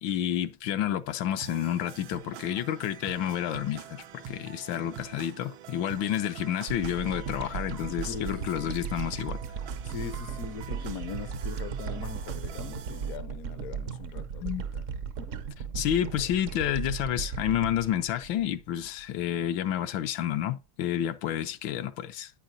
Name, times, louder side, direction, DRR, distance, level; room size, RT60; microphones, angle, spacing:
voice 1, 0.0-9.4 14.4-14.7 15.7-22.3, left 11 dB, 75° left, 1.3 m, -30 dB
sound 1, 1.4-13.2, right 9 dB, 90° right, 1.5 m, -45 dB
sound 2, 6.7-19.2, right 6 dB, 65° right, 0.7 m, -36 dB
voice 2, 8.1-8.8 9.8-14.8, left 6 dB, 60° left, 0.9 m, -40 dB
10.5 x 8.8 x 2.7 m
omnidirectional pair, 2.2 m